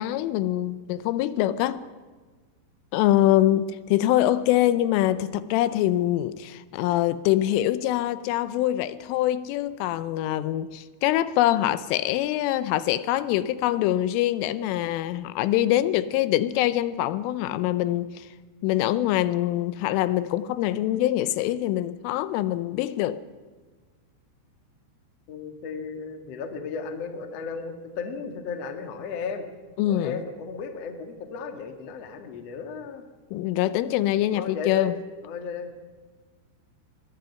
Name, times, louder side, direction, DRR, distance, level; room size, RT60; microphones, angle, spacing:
voice 1, 0.0-1.8 2.9-18.3 18.6-23.2 29.8-30.2 33.3-34.9, left 13 dB, 85° left, 3.2 m, -24 dB
voice 2, 25.3-29.5 29.8-33.1 34.3-34.9 35.2-35.7, left 5 dB, 55° left, 1.9 m, -34 dB
23.0 x 20.5 x 5.7 m
omnidirectional pair, 5.7 m